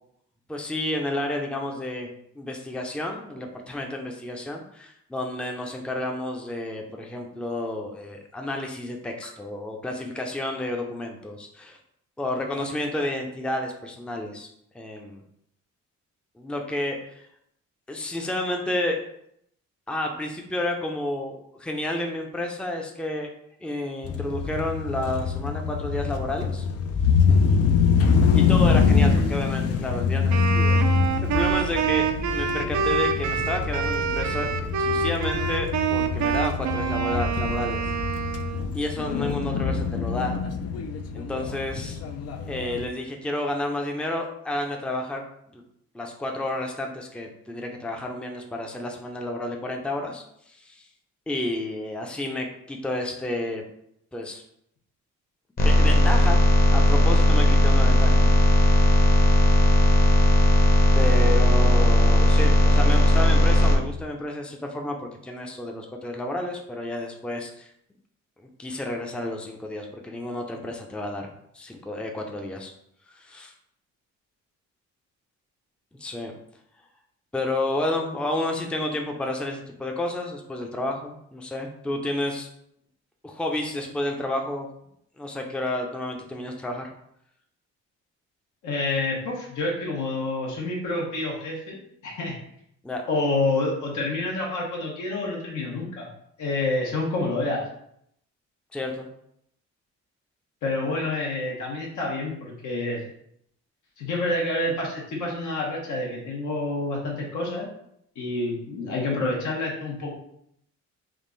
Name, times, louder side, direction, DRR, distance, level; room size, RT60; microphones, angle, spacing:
voice 1, 0.5-11.8 12.2-14.5 14.7-15.2 16.4-17.2 17.9-19.0 19.9-23.3 23.6-26.6 28.3-30.8 31.2-34.5 34.8-37.9 38.7-40.4 41.1-42.0 42.5-45.2 45.5-45.6 45.9-50.9 51.3-53.6 54.1-54.4 55.6-56.4 56.7-58.9 61.0-67.7 68.4-71.3 71.5-72.7 73.2-73.5 76.0-76.3 77.3-82.5 83.2-84.7 85.2-86.9 92.8-93.0 98.7-99.1, left 1 dB, 5° left, 2 dB, 0.5 m, -31 dB
sound 1, 24.0-42.9, left 5 dB, 55° left, 0.4 m, -24 dB
Wind instrument woodwind instrument, 30.3-38.7, right 7 dB, 70° right, 0.5 m, -26 dB
sound 2, 55.6-63.8, left 1 dB, 30° left, 0.8 m, -17 dB
voice 2, 88.6-92.4 93.1-96.1 96.4-97.6 100.6-103.0 104.0-107.7 108.2-110.1, left 2 dB, 80° left, -2 dB, 1.2 m, -28 dB
3.7 x 2.4 x 3.8 m, 0.73 s
cardioid pair, 90°, 30 cm